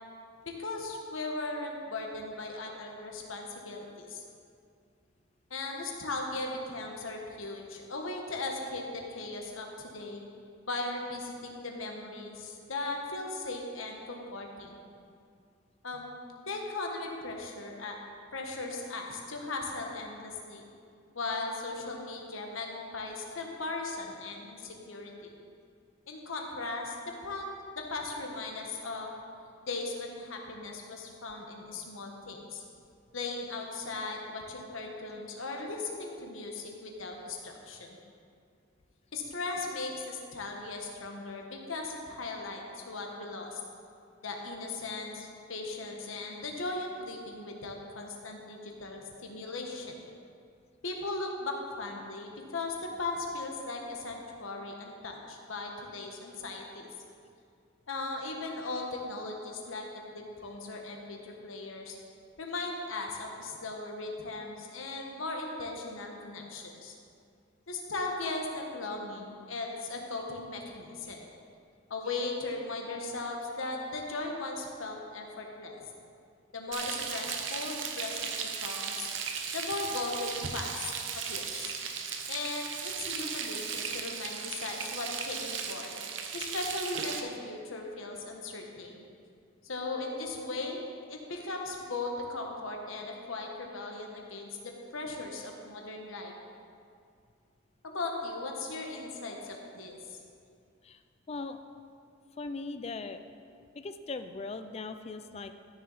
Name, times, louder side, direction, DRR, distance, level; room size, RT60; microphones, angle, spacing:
voice 1, 0.4-4.2 5.5-10.2 10.6-14.8 15.8-16.2 16.5-18.0 18.3-20.6 21.1-25.3 26.1-29.1 29.7-32.6 33.1-37.9 39.1-43.6 44.2-50.0 50.8-56.9 57.9-59.9 60.1-61.9 62.4-66.9 67.7-71.2 71.9-75.8 76.5-79.1 79.5-81.7 82.3-85.9 86.3-89.0 89.6-90.8 91.1-96.3 97.8-100.2, left 3 dB, 80° left, 1 dB, 1.3 m, -38 dB
Frying (food), 76.7-87.2, right 6 dB, 65° right, 0.8 m, -36 dB
voice 2, 101.3-101.6 102.4-103.2 103.7-105.5, left 3 dB, 30° left, 9 dB, 0.4 m, -39 dB
13.0 x 6.7 x 4.1 m, 2.3 s
head